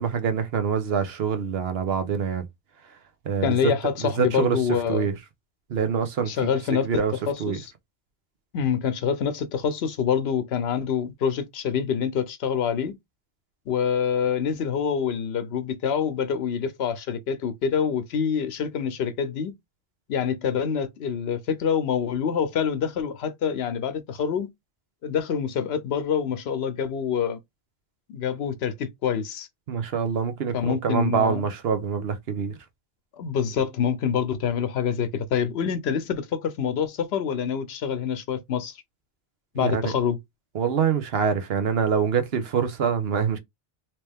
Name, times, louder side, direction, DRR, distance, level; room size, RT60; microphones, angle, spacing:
voice 1, 0.0-2.4 3.2-3.7 4.0-4.6 4.9-5.1 5.7-7.1 7.4-7.6 29.7-32.6 39.6-39.9 40.5-43.4, right 7 dB, 75° right, 1.0 m, -25 dB
voice 2, 3.4-5.1 6.3-7.7 8.5-12.9 13.7-19.5 20.1-24.5 25.0-27.4 28.1-29.5 30.5-31.4 33.2-38.8 39.5-40.2, left 7 dB, 90° left, 0.9 m, -26 dB
3.0 x 3.0 x 3.3 m
omnidirectional pair, 1.0 m